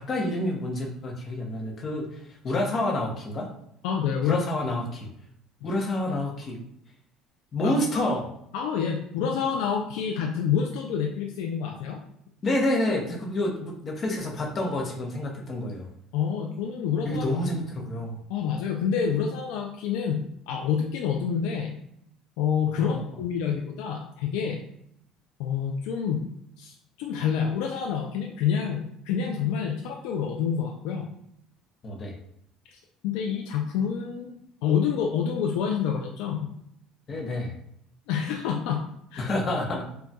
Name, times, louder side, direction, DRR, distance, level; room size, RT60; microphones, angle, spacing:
voice 1, 0.0-3.5 4.2-5.1 5.6-6.6 7.5-8.2 12.4-15.9 17.0-18.2 22.8-23.0 31.8-32.1 37.1-37.5 39.2-39.8, left 1 dB, 35° left, 0 dB, 0.7 m, -28 dB
voice 2, 3.8-4.4 5.6-5.8 7.6-7.8 8.5-12.0 16.1-17.4 18.3-21.8 22.4-24.6 25.4-26.3 26.6-31.1 33.0-36.5 38.1-38.8 39.1-39.2, left 7 dB, 85° left, 1 dB, 0.3 m, -28 dB
3.9 x 2.3 x 2.2 m, 0.73 s
cardioid pair, 115°, 0 cm